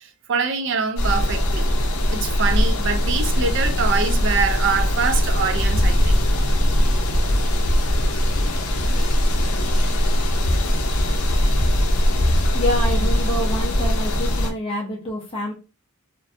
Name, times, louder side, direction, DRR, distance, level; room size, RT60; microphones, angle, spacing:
voice 1, 0.3-1.6 2.1-6.2, right 5 dB, 55° right, 0.4 m, -24 dB
sound 1, 1.0-14.5, equal, 80° left, 0.5 m, -20 dB
voice 2, 12.5-15.5, equal, 25° left, 0.5 m, -27 dB
2.4 x 2.1 x 2.5 m
head